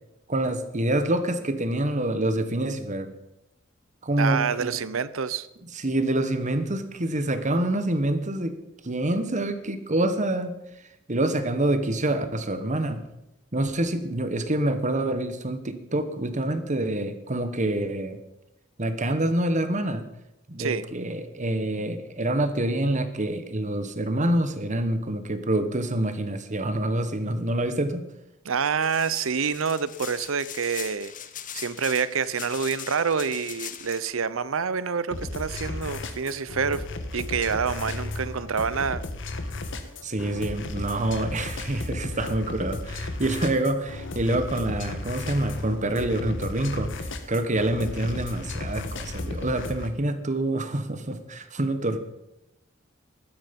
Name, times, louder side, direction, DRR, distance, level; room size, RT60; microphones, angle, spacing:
voice 1, 0.3-3.1 4.0-4.7 5.7-8.5 8.8-10.6 11.1-13.0 13.5-18.2 18.8-20.0 20.5-28.0 40.0-52.0, right 1 dB, 35° right, 10 dB, 1.3 m, -26 dB
voice 2, 4.2-5.5 20.6-20.9 28.4-31.1 31.5-36.8 37.1-39.0, right 6 dB, 75° right, 17 dB, 0.7 m, -27 dB
sound 1, 28.8-34.0, left 10 dB, 40° left, 0.9 m, -40 dB
sound 2, 35.1-49.9, left 2 dB, 65° left, 1.6 m, -34 dB
15.0 x 12.0 x 5.3 m, 0.90 s
head